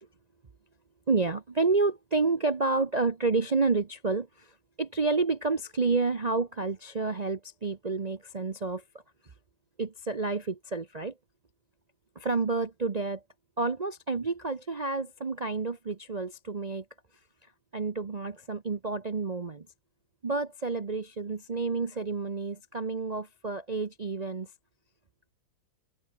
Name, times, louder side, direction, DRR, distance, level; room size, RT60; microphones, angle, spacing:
voice 1, 1.1-8.8 9.8-11.1 12.1-13.2 13.6-16.8 17.7-19.7 20.2-24.5, right 3 dB, 50° right, 0.4 m, -29 dB
omnidirectional pair, 2.1 m